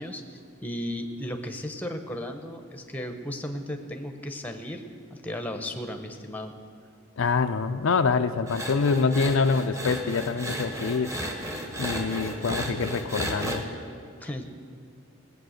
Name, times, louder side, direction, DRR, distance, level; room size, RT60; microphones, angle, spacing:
voice 1, 0.0-4.8 5.1-6.5 14.2-14.4, left 1 dB, 10° left, 5 dB, 0.9 m, -35 dB
voice 2, 7.2-11.1 11.8-13.7, left 4 dB, 65° left, 8 dB, 0.5 m, -25 dB
sound 1, 8.5-13.6, equal, 15° right, 1.3 m, -33 dB
18.5 x 8.4 x 6.5 m, 2.4 s
head